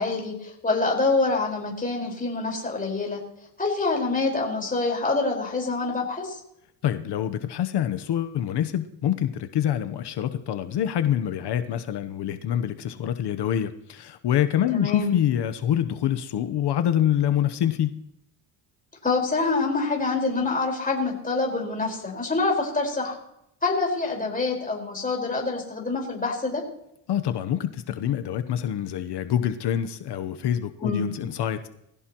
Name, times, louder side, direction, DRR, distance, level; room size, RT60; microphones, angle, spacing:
voice 1, 0.0-3.2 3.6-6.4 14.7-15.1 19.0-23.1 23.6-26.6 30.8-31.1, left 3 dB, 20° left, -1 dB, 4.9 m, -26 dB
voice 2, 6.8-18.0 27.1-31.7, left 10 dB, 60° left, 10 dB, 1.0 m, -26 dB
21.0 x 16.0 x 3.0 m, 0.80 s
cardioid pair, 105°, 46 cm